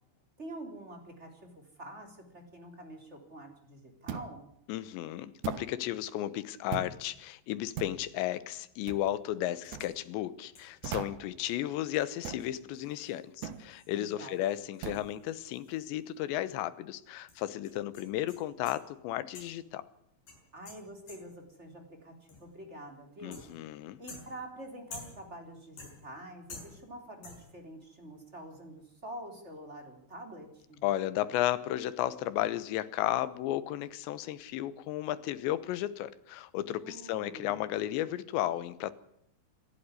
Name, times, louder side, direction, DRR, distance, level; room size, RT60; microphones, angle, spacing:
voice 1, 0.4-4.5 13.9-14.4 20.5-23.4 24.0-30.8 36.8-37.6, right 1 dB, 15° right, 4 dB, 3.2 m, -47 dB
sound 1, 4.1-4.4 5.4-5.7 6.7-7.0 7.8-8.0 8.9-9.1 9.7-9.9 10.8-11.3 12.2-12.5 13.4-13.7 14.8-15.1, right 8 dB, 70° right, 1.9 m, -39 dB
voice 2, 4.7-19.8 23.2-24.0 30.8-38.9, left 13 dB, 75° left, 14 dB, 3.1 m, -34 dB
sound 2, 9.6-10.0 10.5-10.8 11.5-11.6 11.9-12.0 12.4-16.2 16.4-16.5 17.3-18.9 19.3-19.7 20.3-21.5 22.3-22.6 23.3-23.7 24.1-25.4 25.8-26.2 26.5-27.0 27.2-27.6, left 3 dB, 45° left, 7.2 m, -51 dB
27.0 x 12.0 x 9.9 m, 0.76 s
omnidirectional pair, 5.4 m